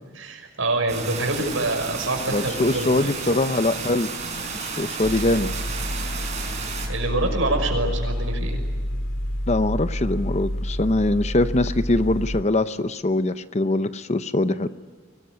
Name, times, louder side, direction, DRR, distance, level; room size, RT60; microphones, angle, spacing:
voice 1, 0.1-3.1 6.9-8.6, right 2 dB, 85° right, 4 dB, 5.9 m, -26 dB
sound 1, 0.9-6.9, right 4 dB, 35° right, 5.6 m, -32 dB
voice 2, 2.3-4.1 4.6-5.5 9.5-14.7, left 2 dB, 35° left, 12 dB, 0.7 m, -22 dB
sound 2, 5.0-12.4, equal, 75° left, 2.0 m, -28 dB
23.5 x 20.0 x 9.5 m, 1.5 s
head